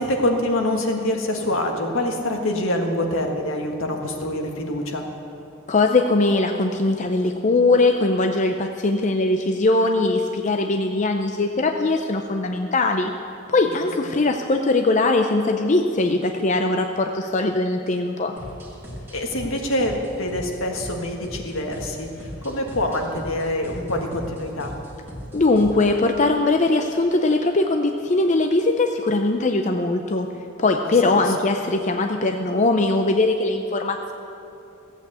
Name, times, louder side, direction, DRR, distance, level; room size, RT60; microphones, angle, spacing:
voice 1, 0.0-5.0 13.7-13.9 19.1-22.1 22.4-24.7 31.0-31.3, left 1 dB, 70° left, 2 dB, 1.7 m, -25 dB
voice 2, 5.7-13.1 13.5-18.3 25.3-30.3 30.6-34.1, left 2 dB, 35° left, 4 dB, 0.5 m, -20 dB
sound 1, 18.4-26.0, equal, 10° right, 2.0 m, -38 dB
15.5 x 8.3 x 8.0 m, 2.8 s
head